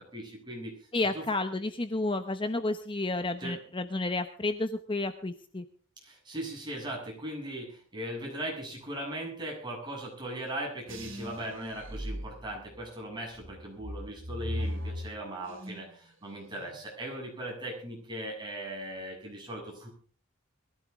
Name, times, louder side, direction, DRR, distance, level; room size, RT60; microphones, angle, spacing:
voice 1, 0.1-0.7 1.1-1.2 3.4-3.6 6.0-19.9, right 1 dB, 20° right, -1 dB, 7.4 m, -39 dB
voice 2, 0.9-5.6, left 2 dB, 25° left, 8 dB, 0.9 m, -31 dB
sound 1, 10.9-12.9 13.4-16.0 16.3-16.8, equal, 65° right, 5.0 m, -38 dB
22.0 x 15.0 x 3.6 m, 0.42 s
head